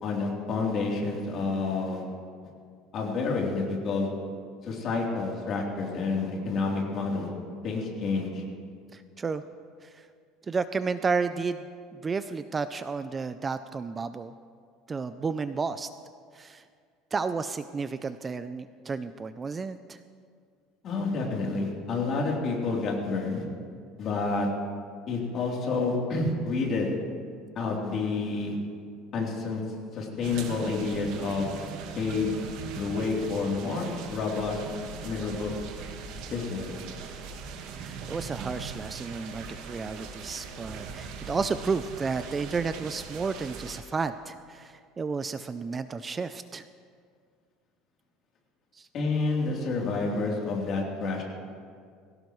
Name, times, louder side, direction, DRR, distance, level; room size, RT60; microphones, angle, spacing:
voice 1, 0.0-2.0 2.9-4.1 4.6-7.3 7.6-8.4 20.8-23.4 24.0-24.5 25.1-26.9 27.5-28.5 29.1-29.6 29.9-31.5 31.9-32.3 32.7-34.6 35.0-35.5 36.3-36.8 48.9-51.2, left 3 dB, 40° left, -2 dB, 3.3 m, -29 dB
voice 2, 8.9-9.4 9.8-10.1 10.5-11.7 11.9-14.3 14.9-15.9 16.3-16.6 17.1-20.0 37.8-46.6 48.7-48.9, right 4 dB, 20° right, 11 dB, 0.4 m, -32 dB
sound 1, 30.2-43.8, right 6 dB, 65° right, 1.6 m, -40 dB
21.0 x 17.0 x 3.2 m, 2.1 s
cardioid pair, 150°, 0 cm